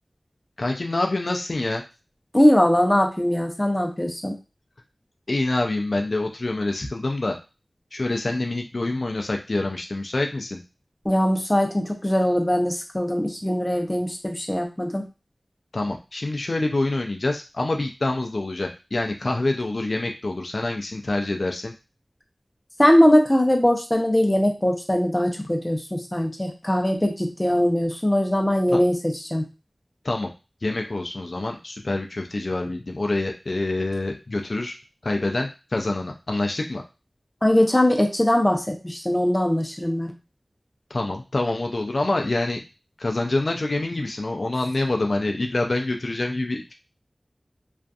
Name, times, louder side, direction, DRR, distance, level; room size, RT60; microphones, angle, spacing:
voice 1, 0.6-1.8 5.3-7.4 7.9-10.6 15.7-21.7 28.7-28.8 30.0-30.3 30.6-34.8 35.0-36.8 40.9-42.6 43.0-46.7, left 2 dB, 65° left, 2 dB, 0.3 m, -26 dB
voice 2, 2.3-4.4 11.0-15.1 22.8-29.4 37.4-40.1, left 1 dB, 20° left, 3 dB, 0.6 m, -21 dB
2.5 x 2.4 x 2.3 m, 0.29 s
wide cardioid pair, 60°, 0 cm